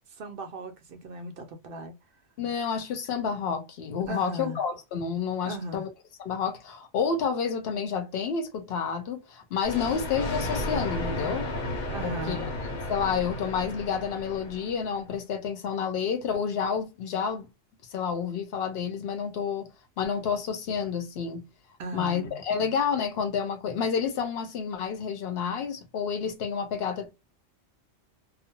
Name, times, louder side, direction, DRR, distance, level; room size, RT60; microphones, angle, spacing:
voice 1, 0.2-2.0 4.1-4.6 5.4-5.9 11.9-12.5 21.8-22.4, right 1 dB, 60° right, 0.6 m, -37 dB
voice 2, 2.4-5.9 6.2-11.5 12.0-12.5 12.9-17.5 17.9-19.7 20.0-21.4 21.9-27.1, left 6 dB, 60° left, 0.9 m, -29 dB
Thunder, 9.6-15.0, left 1 dB, 85° left, 1.1 m, -33 dB
2.4 x 2.1 x 2.8 m
omnidirectional pair, 1.2 m